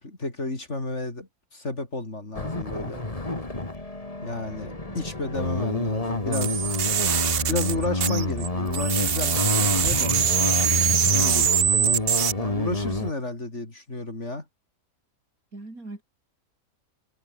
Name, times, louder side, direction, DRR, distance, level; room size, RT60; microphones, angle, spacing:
voice 1, 0.0-3.0 4.2-6.8 7.5-10.1 11.1-11.5 12.4-14.5, left 2 dB, 50° left, 4.8 m, -32 dB
sound 1, 2.3-13.1, left 2 dB, 25° left, 2.7 m, -28 dB
voice 2, 4.7-5.1 15.5-16.0, right 2 dB, 70° right, 5.6 m, -41 dB
sound 2, 6.3-8.5 8.7-12.3, right 9 dB, 50° right, 0.8 m, -23 dB
omnidirectional pair, 1.6 m